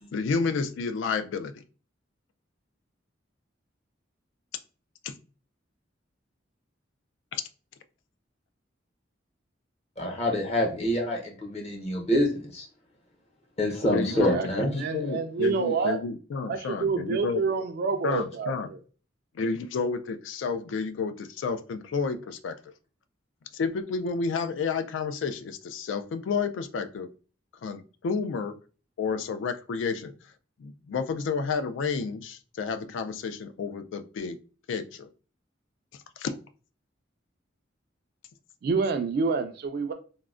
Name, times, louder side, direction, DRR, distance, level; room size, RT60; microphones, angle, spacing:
voice 1, 0.1-1.6 5.0-5.1 7.3-7.4 13.9-17.4 18.0-18.7 19.3-22.7 23.5-27.1 27.6-28.6 29.0-30.1 30.6-34.4 34.7-35.1 36.2-36.4, left 5 dB, 80° left, 0.3 m, -30 dB
voice 2, 10.0-12.7 13.6-14.7, equal, 35° left, 0.7 m, -27 dB
voice 3, 14.1-14.5 14.8-16.0 16.5-18.8 38.6-39.9, right 4 dB, 55° right, 0.3 m, -28 dB
3.5 x 2.1 x 2.4 m
head